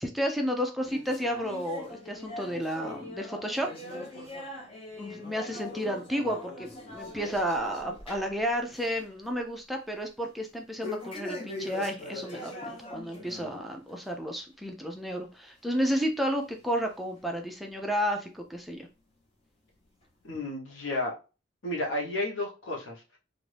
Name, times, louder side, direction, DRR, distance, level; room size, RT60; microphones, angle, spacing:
voice 1, 0.0-3.7 5.0-18.9, equal, ahead, 2 dB, 0.4 m, -32 dB
sound 1, 0.8-8.4 8.7-9.0 9.4-9.5 10.8-13.5 13.9-14.1 14.8-14.9 15.7-15.8 16.6-16.7, left 1 dB, 30° left, 1.1 m, -41 dB
voice 2, 20.2-21.1 21.6-23.2, left 2 dB, 90° left, -1 dB, 1.0 m, -32 dB
2.5 x 2.5 x 3.3 m, 0.32 s
head